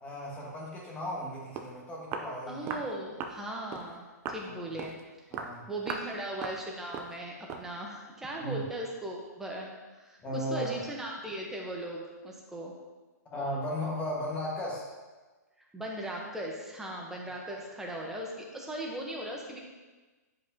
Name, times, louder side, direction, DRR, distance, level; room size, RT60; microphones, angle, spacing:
voice 1, 0.0-2.8 4.5-4.6 5.3-5.7 8.4-8.6 10.2-10.8 13.3-14.9, equal, 15° left, -3 dB, 1.6 m, -35 dB
Walk footsteps, 1.2-1.3 1.6-1.7 2.1-2.3 2.7-2.9 3.2-3.4 3.7-3.9 4.3-4.5 4.8-5.0 5.3-5.6 5.9-6.1 6.4-6.6 6.9-7.2 7.5-7.7, right 6 dB, 25° right, 0.5 m, -38 dB
voice 2, 2.5-5.0 5.7-12.7 15.7-19.6, right 1 dB, 5° right, -2 dB, 0.9 m, -38 dB
9.6 x 4.9 x 2.8 m, 1.3 s
hypercardioid pair, 150°, 9 cm